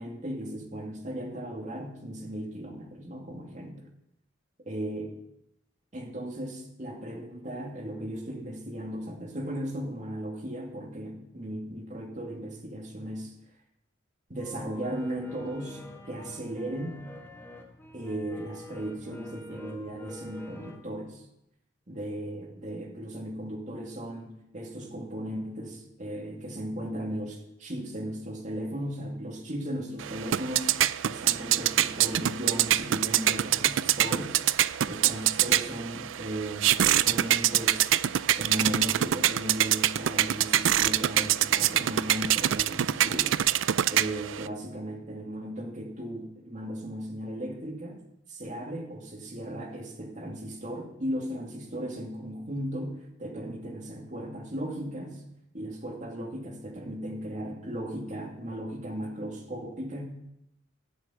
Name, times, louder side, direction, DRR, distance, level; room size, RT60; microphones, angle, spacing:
voice 1, 0.0-3.8 4.7-5.1 5.9-13.3 14.3-17.0 17.9-21.3 21.9-30.8 31.0-34.4 34.9-37.9 38.4-43.3 43.8-48.0 48.3-55.2 55.5-60.0, right 1 dB, 40° right, 2 dB, 2.4 m, -36 dB
sound 1, 14.4-20.8, left 2 dB, 10° left, 1.6 m, -46 dB
sound 2, 30.0-44.5, right 12 dB, 75° right, 0.4 m, -25 dB
13.5 x 7.2 x 8.4 m, 0.83 s
head